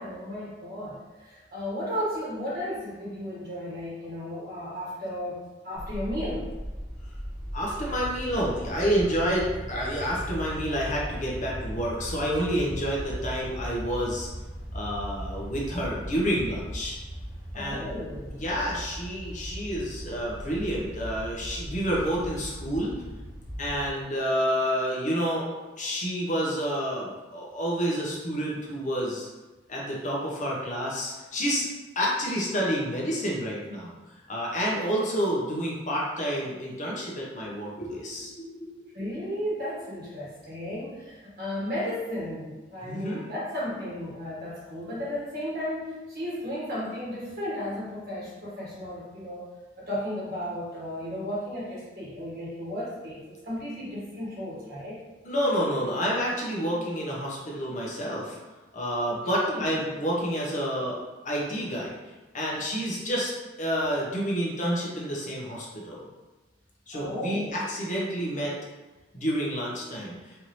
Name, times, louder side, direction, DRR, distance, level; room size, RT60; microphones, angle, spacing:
voice 1, 0.0-5.4 5.6-6.5 17.5-18.4 38.9-49.4 49.8-55.0 59.1-59.6 66.9-67.6, equal, 55° right, -6 dB, 1.5 m, -34 dB
sound 1, 5.7-23.9, equal, 35° right, 1.3 m, -38 dB
voice 2, 7.5-14.3 14.7-17.0 17.5-17.9 18.3-22.9 23.6-25.5 25.8-29.3 29.7-31.7 31.9-33.9 34.3-38.8 42.8-43.2 55.2-58.4 58.7-61.0 61.2-62.0 62.3-63.3 63.6-66.0 66.9-68.5 69.1-70.3, equal, 40° left, -4 dB, 0.9 m, -29 dB
4.6 x 2.7 x 3.1 m, 1.2 s
head